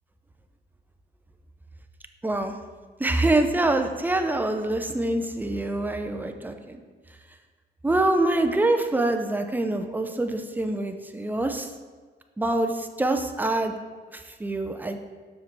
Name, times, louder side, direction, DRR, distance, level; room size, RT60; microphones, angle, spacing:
voice 1, 2.2-2.6 3.0-6.8 7.8-11.7 12.4-13.7 14.1-15.0, right 2 dB, 10° right, 6 dB, 0.5 m, -25 dB
7.2 x 5.9 x 3.2 m, 1.5 s
cardioid pair, 125°, 17 cm